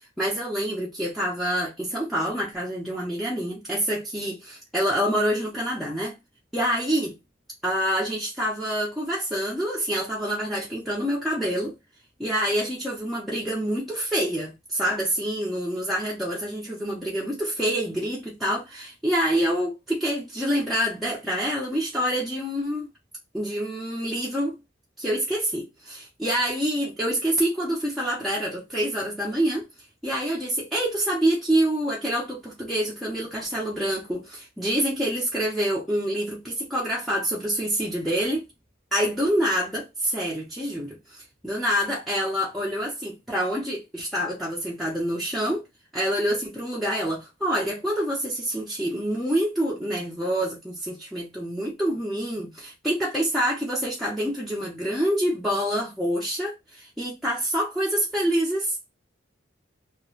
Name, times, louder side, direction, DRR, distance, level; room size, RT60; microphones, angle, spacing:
voice 1, 0.2-6.1 6.5-7.1 7.6-11.7 12.2-22.9 23.3-24.6 25.0-29.7 30.0-38.5 38.9-45.6 45.9-58.9, equal, ahead, 0.6 m, -26 dB
2.4 x 2.2 x 3.1 m
head